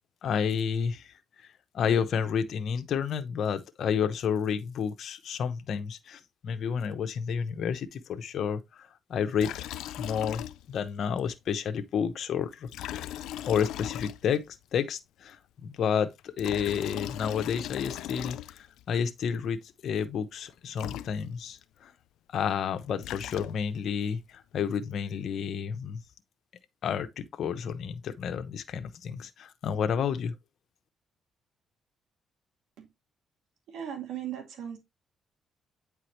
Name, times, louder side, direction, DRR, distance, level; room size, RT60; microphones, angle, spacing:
voice 1, 0.2-9.6 10.0-13.0 13.5-21.9 22.3-26.0 26.8-30.3, left 7 dB, 65° left, 0.8 m, -31 dB
Liquid, 9.4-10.9 11.2-11.3 12.6-14.6 16.2-18.8 20.5-20.6 20.8-21.6 22.7-23.9, left 13 dB, 85° left, 0.4 m, -38 dB
voice 2, 33.7-34.8, right 9 dB, 80° right, 2.3 m, -37 dB
8.7 x 4.8 x 3.0 m
cardioid pair, 90°, 0 cm